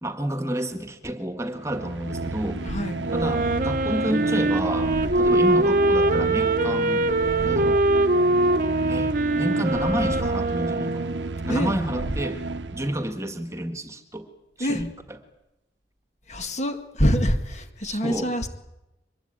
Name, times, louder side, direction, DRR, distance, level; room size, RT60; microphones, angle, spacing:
voice 1, 0.0-2.6 3.1-7.8 8.9-11.1 11.4-12.4 12.7-14.3 14.6-14.9 17.8-18.3, right 1 dB, 15° right, 8 dB, 1.7 m, -30 dB
sound 1, 1.5-13.2, right 3 dB, 80° right, 1.0 m, -31 dB
voice 2, 2.6-3.0 11.5-11.7 12.0-12.1 14.6-14.8 16.3-18.5, equal, 40° left, 7 dB, 2.0 m, -25 dB
Wind instrument woodwind instrument, 3.0-11.4, right 2 dB, 45° right, 1.1 m, -23 dB
23.5 x 21.0 x 8.9 m, 0.93 s
head